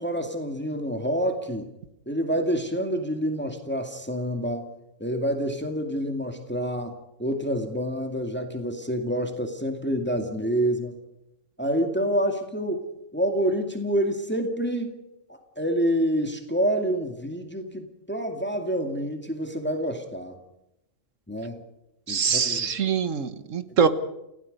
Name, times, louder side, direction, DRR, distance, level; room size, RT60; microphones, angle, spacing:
voice 1, 0.0-1.7 2.1-4.7 5.0-11.0 11.6-12.9 13.1-14.9 15.3-20.4 21.3-21.6 22.1-22.7, equal, 10° left, 5 dB, 2.2 m, -27 dB
voice 2, 22.1-23.9, right 6 dB, 75° right, 11 dB, 1.7 m, -24 dB
29.5 x 17.0 x 5.4 m, 0.86 s
omnidirectional pair, 1.3 m